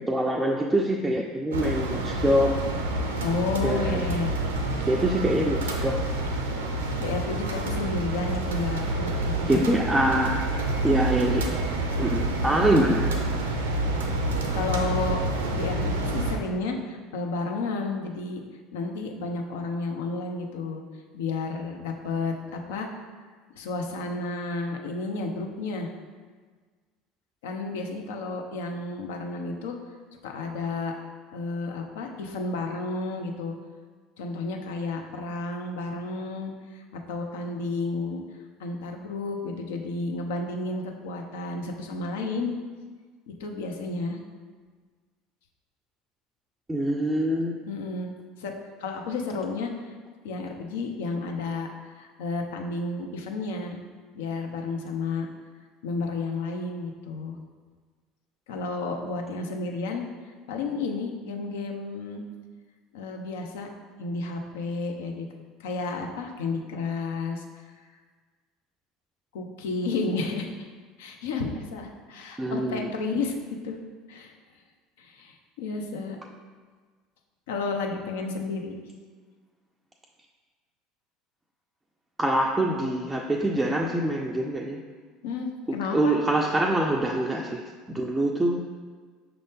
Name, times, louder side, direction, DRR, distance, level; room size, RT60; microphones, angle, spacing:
voice 1, 0.1-2.7 3.6-4.1 4.9-6.1 9.5-10.4 10.8-11.5 12.0-13.1 46.7-47.6 72.4-72.9 82.2-84.8 85.7-88.6, right 1 dB, 10° right, 0 dB, 0.3 m, -25 dB
sound 1, 1.5-16.4, right 2 dB, 80° right, 0.5 m, -28 dB
voice 2, 3.2-4.3 7.0-9.6 12.6-12.9 14.5-15.2 15.5-18.4 18.7-20.8 21.1-22.9 23.5-25.9 27.4-29.8 30.2-30.9 31.3-33.5 34.2-38.2 38.6-42.6 43.4-44.2 47.7-48.1 48.4-48.5 48.8-49.9 50.2-53.8 54.1-55.3 55.8-57.4 58.5-60.0 60.5-62.2 62.9-63.7 64.0-65.3 65.6-67.4 69.3-70.5 71.0-73.3 73.6-73.8 74.1-74.3 75.0-76.2 77.5-78.7 85.2-86.2, left 3 dB, 75° left, 3 dB, 0.5 m, -31 dB
5.6 x 2.6 x 3.5 m, 1.5 s
hypercardioid pair, 70°, 0 cm